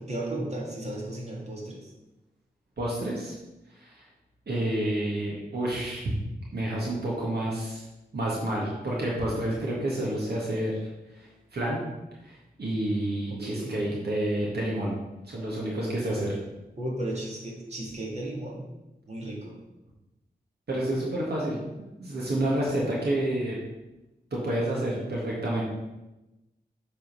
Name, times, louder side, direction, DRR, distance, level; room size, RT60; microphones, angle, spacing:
voice 1, 0.0-1.9 13.3-13.8 16.8-18.6 19.1-19.6, right 1 dB, 40° right, -3 dB, 2.4 m, -34 dB
voice 2, 2.8-3.3 3.8-4.1 4.5-6.1 6.5-7.8 8.1-10.8 11.1-11.8 12.2-14.9 15.3-16.3 20.7-23.6 24.3-25.6, right 1 dB, 80° right, -4 dB, 1.9 m, -29 dB
8.1 x 4.3 x 5.5 m, 1.0 s
wide cardioid pair, 65°, 17 cm